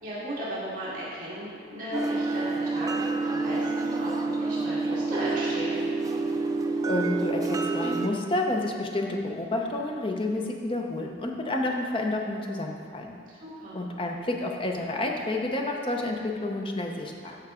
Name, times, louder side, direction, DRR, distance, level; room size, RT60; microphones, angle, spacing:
voice 1, 0.0-5.8 13.4-13.8, right 1 dB, 45° right, -9 dB, 2.1 m, -35 dB
sound 1, 1.9-8.1, right 3 dB, 20° right, 0.4 m, -28 dB
voice 2, 6.8-13.1 13.7-17.4, left 2 dB, 30° left, 1 dB, 0.7 m, -30 dB
13.5 x 4.6 x 3.6 m, 2.3 s
head